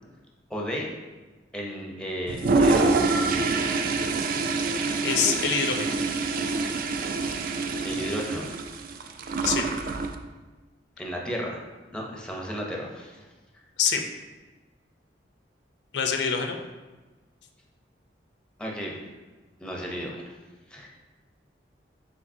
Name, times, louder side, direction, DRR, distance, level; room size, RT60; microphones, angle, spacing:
voice 1, 0.5-0.9 1.5-3.0 7.8-8.5 11.0-11.6 11.9-13.3 18.6-19.0 19.6-20.3 20.7-20.9, equal, 5° left, -1 dB, 0.5 m, -33 dB
Toilet flush, 2.3-10.2, right 3 dB, 50° right, 0.3 m, -26 dB
voice 2, 5.0-5.9 9.4-9.6 13.8-14.0 15.9-16.6, left 6 dB, 70° left, 4 dB, 0.4 m, -25 dB
6.7 x 2.7 x 2.6 m, 1.3 s
head